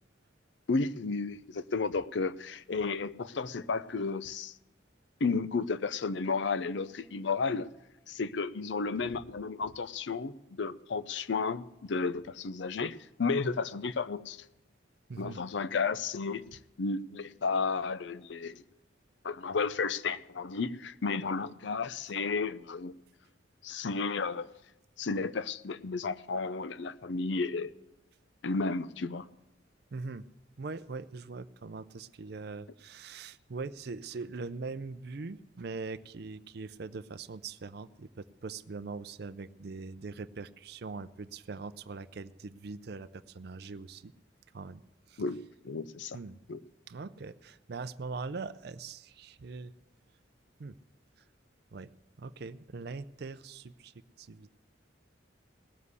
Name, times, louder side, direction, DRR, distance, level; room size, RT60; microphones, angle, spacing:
voice 1, 0.7-4.5 5.2-7.7 8.1-14.4 15.2-18.6 19.2-22.9 23.6-24.5 25.0-27.7 28.4-29.3 45.2-46.2 46.5-46.6, left 4 dB, 70° left, 0.5 m, -33 dB
voice 2, 29.9-30.3 30.6-44.1 44.5-44.8 45.1-45.2 46.1-46.4 46.9-49.7 50.6-50.8 51.7-51.9 52.2-54.6, right 4 dB, 55° right, 0.5 m, -42 dB
18.0 x 7.4 x 8.1 m
head